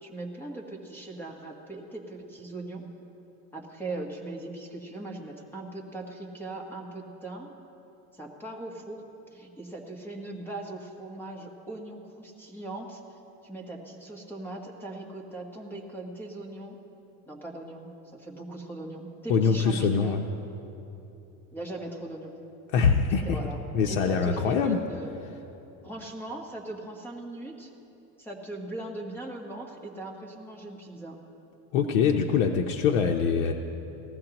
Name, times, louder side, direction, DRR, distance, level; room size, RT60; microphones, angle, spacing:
voice 1, 0.0-2.8 3.5-7.5 8.1-9.0 9.3-13.0 13.4-16.8 17.3-20.2 21.5-22.3 23.2-23.6 23.9-25.3 25.8-27.7 28.2-31.2, right 2 dB, 5° left, -1 dB, 1.4 m, -39 dB
voice 2, 19.3-20.2 22.7-23.4 23.7-24.8 31.7-33.5, left 6 dB, 90° left, 2 dB, 0.8 m, -23 dB
19.0 x 15.0 x 3.0 m, 2.9 s
cardioid pair, 145°, 38 cm